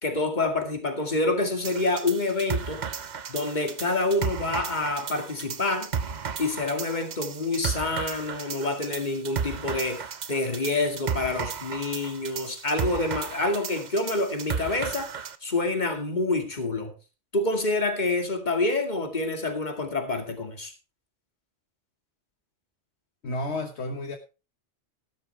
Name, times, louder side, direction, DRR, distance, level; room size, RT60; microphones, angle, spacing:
voice 1, 0.0-2.8 3.3-5.9 6.4-15.1 15.4-16.9 17.3-20.7, left 2 dB, 40° left, 2.4 m, -27 dB
sound 1, 1.6-15.4, right 6 dB, 45° right, 0.8 m, -34 dB
voice 2, 23.2-24.2, left 2 dB, 70° left, 1.5 m, -31 dB
13.5 x 12.5 x 3.4 m
omnidirectional pair, 1.2 m